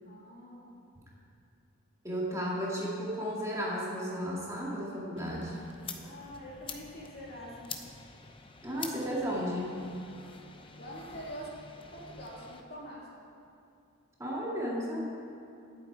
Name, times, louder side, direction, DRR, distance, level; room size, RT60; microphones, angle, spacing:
voice 1, 0.0-0.8 6.0-7.8 10.7-11.5 11.9-13.1, equal, 45° left, -4 dB, 2.6 m, -45 dB
voice 2, 2.0-5.6 8.6-9.8 14.2-15.0, equal, 15° right, -5 dB, 2.0 m, -34 dB
sound 1, 5.2-12.6, left 5 dB, 25° left, 0.7 m, -47 dB
19.5 x 8.4 x 4.6 m, 2.6 s
head